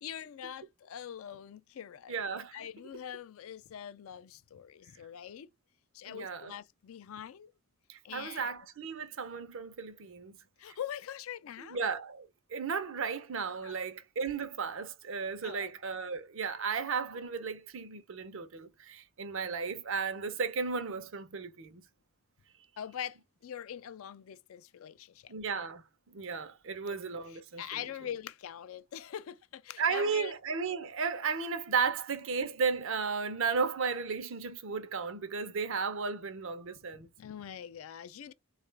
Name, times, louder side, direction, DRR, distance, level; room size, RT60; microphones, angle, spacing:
voice 1, 0.0-2.2 2.5-5.5 5.9-7.5 8.0-8.5 10.6-11.8 13.6-13.8 15.4-15.7 22.8-25.3 26.7-27.0 27.3-30.3 36.9-38.3, left 9 dB, 70° left, 0.4 m, -43 dB
voice 2, 2.1-2.6 6.0-6.5 7.9-10.3 11.6-21.8 25.3-27.8 29.8-37.1, right 5 dB, 65° right, 0.7 m, -34 dB
3.7 x 2.4 x 3.2 m
head